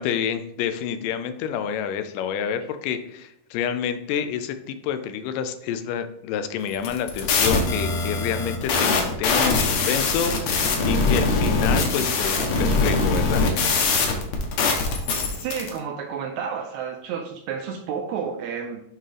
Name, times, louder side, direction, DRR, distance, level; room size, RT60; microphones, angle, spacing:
voice 1, 0.0-13.5, left 8 dB, 85° left, 9 dB, 2.2 m, -28 dB
sound 1, 6.7-15.7, left 3 dB, 70° left, 2.1 m, -22 dB
voice 2, 15.4-18.8, right 7 dB, 85° right, 3 dB, 1.6 m, -31 dB
8.1 x 3.7 x 3.4 m, 0.77 s
omnidirectional pair, 3.8 m